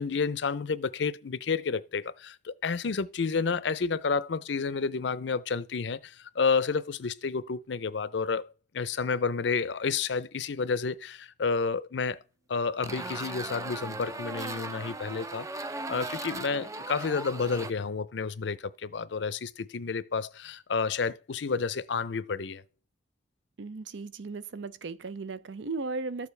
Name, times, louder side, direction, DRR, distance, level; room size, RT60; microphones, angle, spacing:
voice 1, 0.0-12.2 12.5-22.6, left 5 dB, 75° left, 0.6 m, -30 dB
sound 1, 12.8-17.7, right 2 dB, 15° right, 0.4 m, -38 dB
voice 2, 23.6-26.3, right 3 dB, 80° right, 0.5 m, -36 dB
13.0 x 7.1 x 3.3 m
head